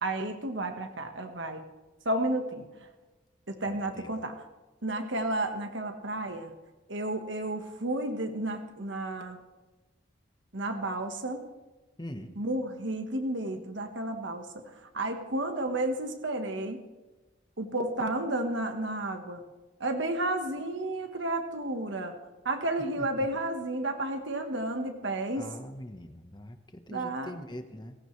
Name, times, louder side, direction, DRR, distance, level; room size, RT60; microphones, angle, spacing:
voice 1, 0.0-1.6 2.0-2.7 3.5-4.3 4.8-6.5 6.9-9.4 10.5-11.4 12.4-16.8 17.6-19.4 19.8-22.2 22.4-25.5 26.9-27.4, right 1 dB, 70° right, 5 dB, 1.5 m, -32 dB
voice 2, 3.7-4.1 12.0-12.3 23.0-23.1 25.4-28.0, left 1 dB, 20° left, 7 dB, 1.2 m, -43 dB
28.0 x 15.0 x 3.3 m, 1.2 s
head